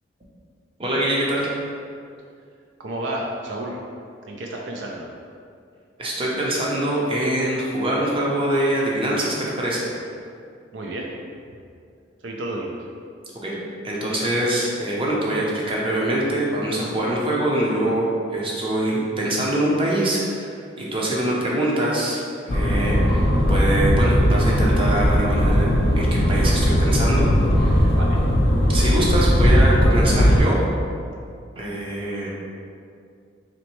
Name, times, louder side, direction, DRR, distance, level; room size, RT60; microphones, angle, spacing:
voice 1, 0.8-1.5 6.0-9.9 13.3-13.6 13.8-27.3 27.6-27.9 28.7-30.6 31.5-32.3, right 1 dB, 30° right, -4 dB, 0.6 m, -24 dB
voice 2, 2.8-3.8 4.3-5.1 10.7-11.1 12.2-12.8 27.9-28.2, right 1 dB, 70° right, -1 dB, 0.4 m, -31 dB
sound 1, 22.5-30.4, equal, 50° left, 0.5 m, -18 dB
4.1 x 3.1 x 3.0 m, 2.3 s
head